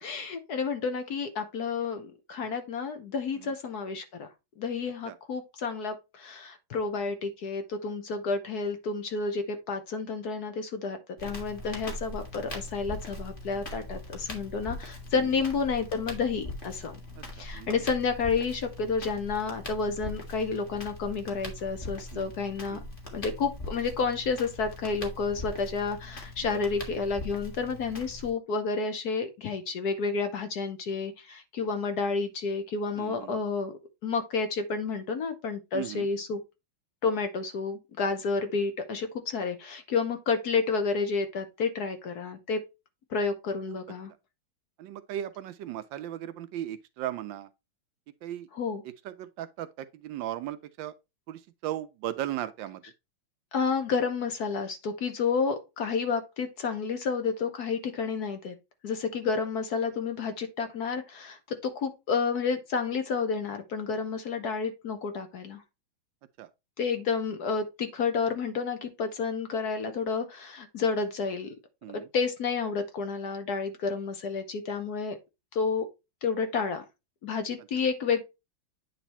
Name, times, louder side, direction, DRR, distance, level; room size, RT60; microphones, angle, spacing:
voice 1, 0.0-4.3 4.6-17.0 17.3-22.8 23.1-33.7 34.0-36.4 37.0-42.6 43.1-44.1 48.5-48.8 53.5-58.5 58.8-65.6 66.8-71.5 71.9-75.2 75.5-75.9 76.2-76.8 77.2-78.2, left 5 dB, 60° left, 1.2 m, -30 dB
Crackle, 11.2-28.3, left 1 dB, 25° left, 1.7 m, -41 dB
voice 2, 17.2-17.7 22.1-22.3 22.7-22.9 26.5-26.7 33.0-33.4 35.7-36.1 43.7-43.8 44.8-47.5 48.2-48.5 49.0-50.9 51.3-52.8 66.4-66.5 71.8-72.1, right 12 dB, 75° right, 1.2 m, -37 dB
9.1 x 3.3 x 4.2 m
omnidirectional pair, 2.2 m